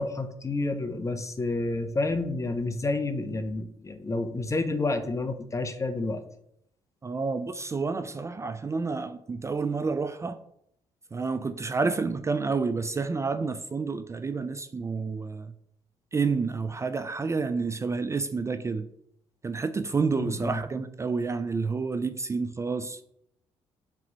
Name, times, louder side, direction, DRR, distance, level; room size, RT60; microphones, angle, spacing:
voice 1, 0.0-6.2 20.2-20.6, left 2 dB, 25° left, 9 dB, 0.7 m, -29 dB
voice 2, 7.0-10.4 11.1-15.5 16.1-18.9 19.4-23.0, right 4 dB, 25° right, 10 dB, 0.4 m, -29 dB
5.9 x 3.0 x 5.3 m, 0.75 s
cardioid pair, 75°, 11 cm